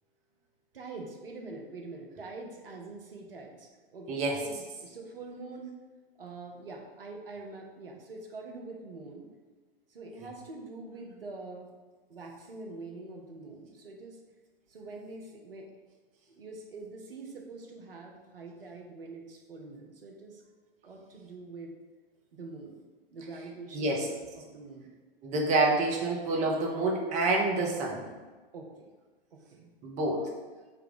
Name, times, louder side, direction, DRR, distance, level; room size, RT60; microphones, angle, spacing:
voice 1, 0.7-5.7 6.2-9.3 9.9-11.7 12.1-14.2 14.7-15.7 16.3-20.4 20.8-21.7 22.3-22.8 23.1-24.9 28.5-28.9 29.3-29.7 30.1-30.3, right 3 dB, 75° right, 1 dB, 0.7 m, -45 dB
voice 2, 4.1-4.4 23.7-24.1 25.2-28.1 29.8-30.3, right 2 dB, 25° right, -1 dB, 0.6 m, -27 dB
3.5 x 2.2 x 3.8 m, 1.3 s
figure-of-eight pair, 95°, 29 cm